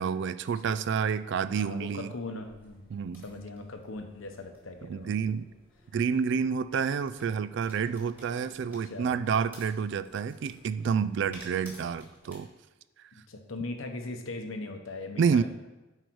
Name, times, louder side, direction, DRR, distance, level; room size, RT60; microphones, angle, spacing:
voice 1, 0.0-2.1 2.9-3.2 4.9-5.5 5.9-12.5 15.2-15.4, right 6 dB, 60° right, 15 dB, 0.3 m, -29 dB
voice 2, 1.4-5.4 8.8-9.2 13.1-15.4, left 2 dB, 75° left, 5 dB, 0.9 m, -40 dB
sound 1, 2.4-12.3, equal, 10° right, 1.8 m, -55 dB
8.0 x 4.8 x 4.6 m, 1.1 s
head